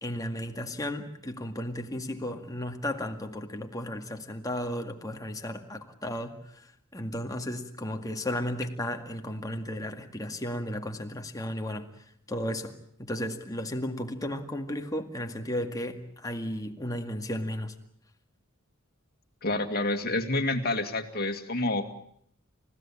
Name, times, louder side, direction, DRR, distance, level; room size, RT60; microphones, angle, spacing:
voice 1, 0.0-11.9 12.3-17.7, left 1 dB, 15° left, 2.0 m, -34 dB
voice 2, 19.4-21.9, left 2 dB, 45° left, 2.3 m, -28 dB
29.5 x 16.0 x 8.7 m
head